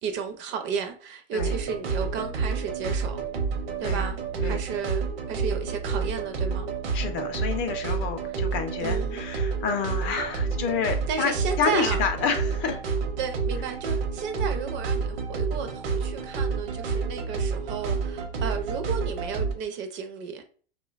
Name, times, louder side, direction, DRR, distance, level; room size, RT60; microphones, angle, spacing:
voice 1, 0.0-3.2 3.8-6.7 8.8-9.2 11.1-12.0 13.2-20.4, right 6 dB, 40° right, 0.4 m, -33 dB
sound 1, 1.4-19.5, right 5 dB, 70° right, 0.7 m, -29 dB
voice 2, 6.9-12.8, left 6 dB, 40° left, 0.5 m, -29 dB
2.7 x 2.2 x 2.3 m
hypercardioid pair, 110°, 30 cm